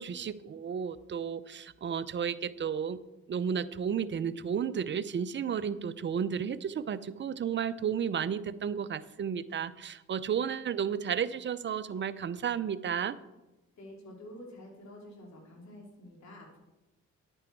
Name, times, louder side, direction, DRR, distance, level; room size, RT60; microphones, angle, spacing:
voice 1, 0.0-3.0 3.3-13.2, right 7 dB, 40° right, 13 dB, 0.6 m, -33 dB
voice 2, 13.8-16.6, left 1 dB, 65° left, 0 dB, 3.4 m, -49 dB
11.0 x 8.9 x 4.6 m, 1.0 s
cardioid pair, 90°, 30 cm